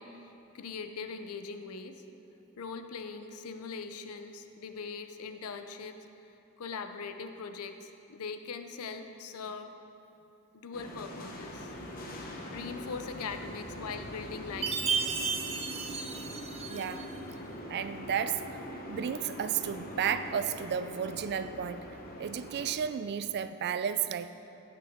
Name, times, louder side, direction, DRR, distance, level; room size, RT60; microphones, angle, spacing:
voice 1, 0.0-2.0 2.6-6.0 6.6-9.7 10.5-11.7 12.2-15.3, left 5 dB, 75° left, 8 dB, 0.6 m, -41 dB
sound 1, 10.7-22.7, equal, 40° left, 1.0 m, -43 dB
Chime, 14.6-17.1, right 6 dB, 30° right, 0.7 m, -33 dB
voice 2, 16.7-17.1 17.7-18.5 18.9-21.9 22.2-24.3, right 8 dB, 50° right, 12 dB, 0.3 m, -33 dB
15.5 x 5.9 x 3.6 m, 2.9 s
head